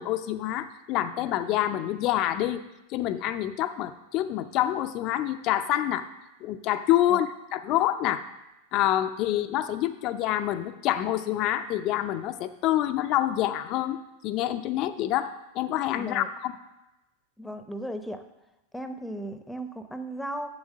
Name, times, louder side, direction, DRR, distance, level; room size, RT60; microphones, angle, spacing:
voice 1, 0.0-2.6 2.9-6.1 6.4-8.2 8.7-14.0 14.2-15.3 15.5-16.5, left 13 dB, 45° left, 9 dB, 0.6 m, -27 dB
voice 2, 16.0-16.3 17.4-18.2 18.7-20.5, right 1 dB, 5° left, 9 dB, 0.9 m, -36 dB
7.2 x 7.0 x 6.5 m, 0.98 s
figure-of-eight pair, 95°, 0 cm